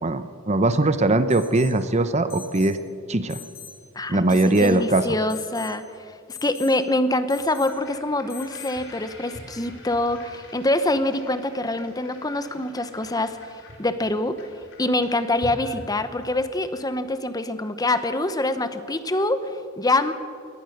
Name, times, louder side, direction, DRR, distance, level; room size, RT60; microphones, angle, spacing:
voice 1, 0.0-2.8 3.1-3.4 4.1-5.0, right 2 dB, 30° right, 11 dB, 0.8 m, -20 dB
Alarm, 1.3-1.8 2.3-2.8 3.3-3.8 4.3-4.8 5.3-5.8 6.3-6.7 7.3-7.7 8.3-8.7, left 9 dB, 45° left, 4.1 m, -42 dB
voice 2, 3.9-5.8 6.3-14.5 14.8-20.1, left 2 dB, 20° left, 11 dB, 0.9 m, -25 dB
sound 1, 7.3-16.6, left 1 dB, 60° left, 4.5 m, -45 dB
22.0 x 18.5 x 6.6 m, 2.3 s
head